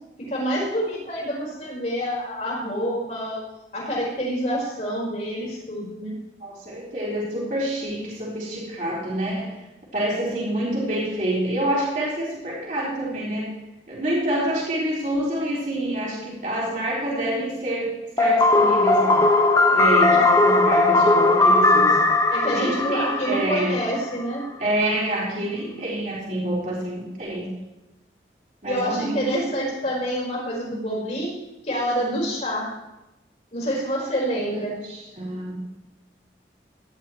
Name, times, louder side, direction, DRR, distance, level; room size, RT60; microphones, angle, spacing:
voice 1, 0.3-3.4 3.7-6.1 20.1-20.2 22.3-24.4 28.6-31.3 31.6-32.7 33.5-34.7, equal, 40° left, -4 dB, 4.6 m, -27 dB
voice 2, 6.4-9.5 9.9-13.6 13.9-19.3 19.7-22.1 22.5-23.8 24.6-27.5 28.6-29.5 34.3-35.5, right 1 dB, 45° right, -6 dB, 3.7 m, -27 dB
sound 1, 18.2-24.0, left 2 dB, 20° left, 0.7 m, -18 dB
17.5 x 11.0 x 3.1 m, 0.95 s
head